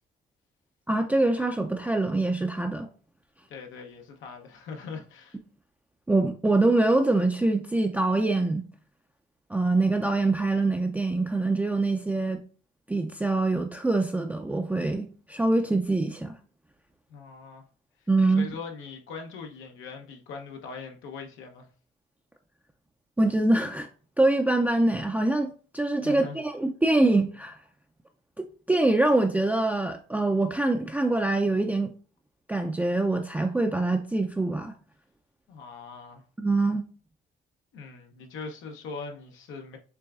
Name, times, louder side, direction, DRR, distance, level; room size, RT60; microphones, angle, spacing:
voice 1, 0.9-2.9 6.1-8.7 9.5-12.4 12.9-16.4 18.1-18.5 23.2-23.9 24.2-27.6 28.4-31.9 32.5-34.7 36.4-36.8, right 2 dB, 10° right, 0.4 m, -24 dB
voice 2, 3.5-5.4 17.1-17.7 18.3-21.7 26.0-26.4 35.5-36.2 37.7-39.8, left 4 dB, 85° left, 0.8 m, -41 dB
6.8 x 2.3 x 2.4 m
cardioid pair, 90°, 20 cm